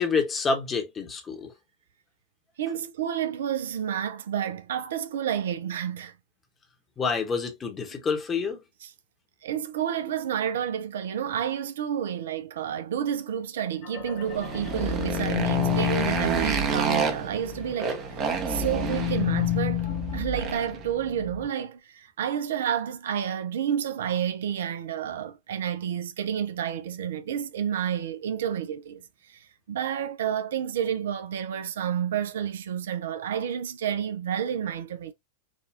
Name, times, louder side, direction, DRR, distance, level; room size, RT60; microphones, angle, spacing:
voice 1, 0.0-1.5 7.0-8.6, left 5 dB, 20° left, 1.0 m, -27 dB
voice 2, 2.6-6.1 9.4-19.9 20.1-35.1, right 9 dB, 60° right, 0.4 m, -30 dB
sound 1, 13.8-17.7 18.1-21.5, left 9 dB, 40° left, 0.8 m, -30 dB
Motorcycle, 14.2-20.8, right 6 dB, 35° right, 0.7 m, -30 dB
4.9 x 2.4 x 2.5 m
figure-of-eight pair, 90°, 0 cm